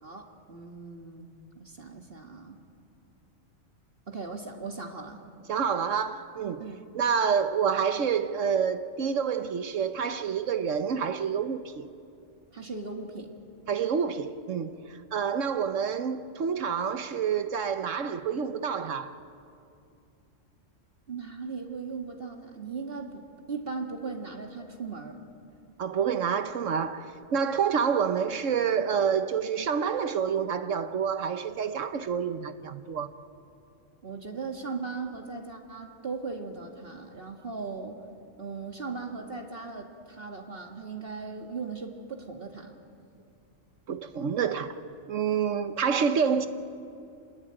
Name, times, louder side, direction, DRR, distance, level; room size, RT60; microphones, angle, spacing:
voice 1, 0.0-2.6 4.1-5.2 6.6-6.8 12.5-13.4 21.1-25.2 34.0-38.0 38.4-42.8, right 4 dB, 50° right, 2.1 m, -38 dB
voice 2, 5.5-6.6 6.9-11.9 13.7-19.2 25.8-33.1 43.9-44.8 45.1-46.5, right 7 dB, 75° right, 1.3 m, -28 dB
26.5 x 21.0 x 8.9 m
omnidirectional pair, 1.3 m